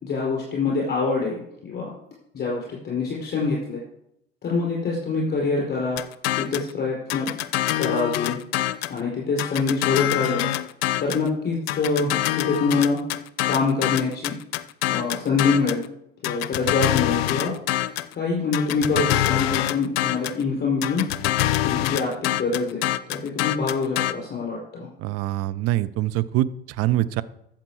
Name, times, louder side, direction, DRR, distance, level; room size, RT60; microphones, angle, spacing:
voice 1, 0.0-1.9 2.3-3.8 4.4-6.0 6.3-7.3 7.8-8.4 8.9-10.5 11.0-13.0 13.5-14.4 14.9-15.8 16.2-17.5 18.2-21.0 21.6-22.8 23.1-24.9, left 4 dB, 35° left, -3 dB, 4.7 m, -25 dB
sound 1, 6.0-6.7 7.1-9.0 9.4-11.3 11.7-15.8 16.2-18.1 18.5-20.4 20.8-24.1, left 13 dB, 75° left, 0.6 m, -25 dB
voice 2, 25.0-27.2, right 14 dB, 50° right, 16 dB, 0.7 m, -24 dB
13.5 x 7.4 x 4.8 m, 0.79 s
hypercardioid pair, 75°, 31 cm